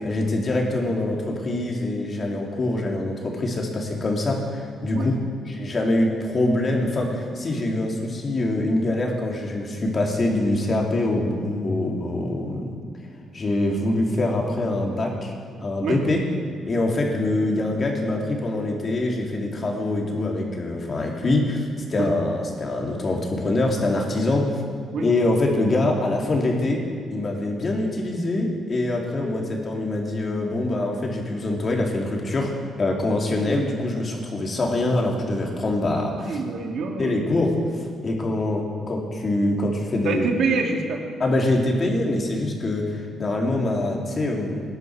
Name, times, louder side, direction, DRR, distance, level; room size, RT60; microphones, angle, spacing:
voice 1, 0.0-5.2 5.5-12.7 13.3-15.3 15.6-16.2 16.6-21.6 21.9-24.6 25.0-26.8 27.1-32.5 32.8-36.4 37.0-40.3 41.2-44.6, left 2 dB, 40° left, 0 dB, 2.9 m, -24 dB
voice 2, 33.3-33.8 36.2-37.2 40.0-41.0, right 4 dB, 70° right, 2 dB, 2.0 m, -27 dB
19.0 x 10.5 x 4.8 m, 2.2 s
cardioid pair, 90°, 0 cm